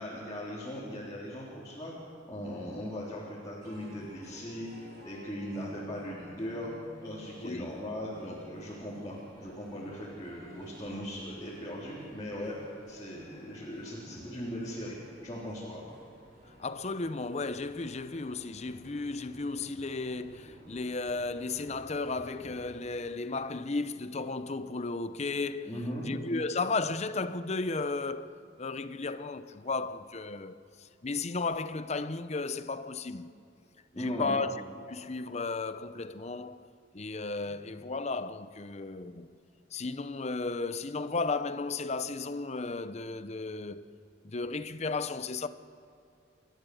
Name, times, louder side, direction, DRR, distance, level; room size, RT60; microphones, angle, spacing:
voice 1, 0.0-1.9 2.3-4.7 5.0-6.7 7.0-12.6 12.9-15.0 15.2-15.8 25.7-26.0 34.0-34.4, equal, 25° left, 3.8 m, -39 dB
sound 1, 3.6-22.8, equal, 60° right, 5.5 m, -53 dB
voice 2, 7.4-7.8 16.6-25.7 26.0-33.3 33.9-34.5 34.9-36.7 36.9-39.3 39.7-43.9 44.2-45.5, left 3 dB, 40° left, 0.8 m, -34 dB
29.0 x 13.5 x 7.9 m
head